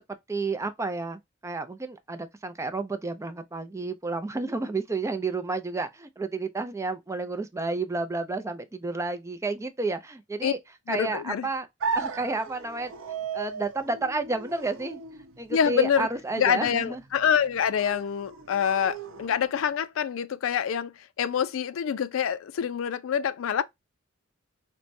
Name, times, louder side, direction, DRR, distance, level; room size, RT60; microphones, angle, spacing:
voice 1, 0.3-10.6 10.9-11.7 11.9-12.9 13.3-15.0 15.4-17.0, right 3 dB, 15° right, 0.4 m, -31 dB
voice 2, 10.9-11.5 15.5-16.1 16.4-23.6, left 8 dB, 75° left, 0.4 m, -26 dB
sound 1, 11.8-19.8, right 5 dB, 80° right, 0.7 m, -37 dB
4.5 x 2.1 x 2.5 m
head